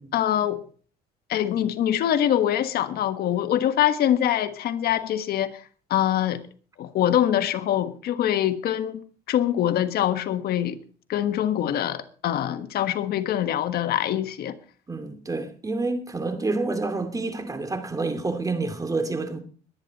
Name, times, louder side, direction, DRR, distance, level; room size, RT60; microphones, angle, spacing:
voice 1, 0.1-0.6 1.3-5.5 5.9-6.4 6.8-9.0 9.3-10.8 11.1-14.5, left 11 dB, 65° left, 1.5 m, -24 dB
voice 2, 14.9-19.4, right 3 dB, 20° right, 2.5 m, -28 dB
22.0 x 9.6 x 4.2 m
cardioid pair, 110°, 17 cm